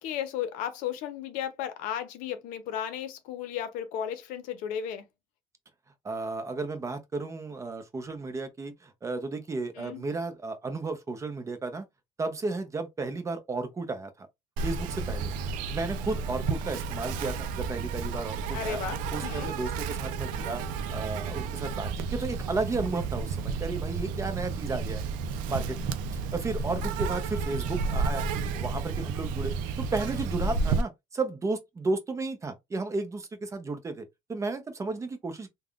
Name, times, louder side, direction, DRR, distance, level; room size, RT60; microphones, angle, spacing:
voice 1, 0.0-5.1 9.7-10.0 18.5-19.5, left 9 dB, 80° left, 0.6 m, -34 dB
voice 2, 6.0-11.8 12.2-14.3 14.6-15.3 15.7-18.8 19.1-20.6 20.9-25.0 25.5-28.3 28.5-35.5, right 3 dB, 20° right, 0.6 m, -33 dB
Insect, 14.6-30.8, right 4 dB, 85° right, 0.4 m, -32 dB
3.4 x 2.2 x 2.3 m
cardioid pair, 120°, 13 cm